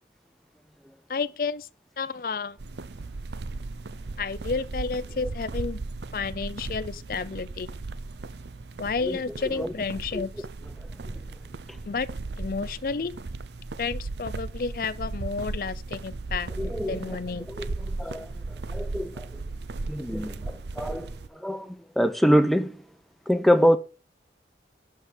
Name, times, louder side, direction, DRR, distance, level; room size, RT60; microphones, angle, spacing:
voice 1, 1.1-1.7 2.0-2.6 4.2-5.8 6.1-7.7 8.8-10.3 11.9-12.1 12.4-13.1 13.8-16.5 16.8-17.5, left 4 dB, 55° left, 0.5 m, -31 dB
sound 1, 2.6-21.3, right 3 dB, 75° right, 0.6 m, -36 dB
voice 2, 16.6-17.2 17.5-18.3 18.7-19.4 19.9-22.8 23.3-23.8, equal, ahead, 0.7 m, -25 dB
11.5 x 4.8 x 6.6 m
head